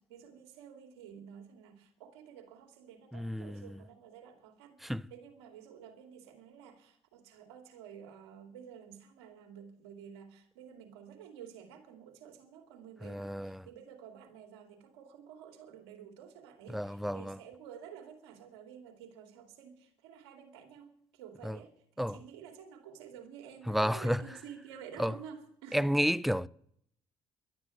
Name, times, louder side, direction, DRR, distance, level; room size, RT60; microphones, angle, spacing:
voice 1, 0.0-26.0, right 8 dB, 85° right, 2.6 m, -51 dB
voice 2, 3.1-3.6 4.8-5.0 13.0-13.6 16.7-17.4 21.4-21.6 22.0-22.2 23.7-24.2 25.0-25.1 25.7-26.5, equal, ahead, 0.5 m, -31 dB
12.0 x 9.6 x 9.4 m
hypercardioid pair, 55°, 14 cm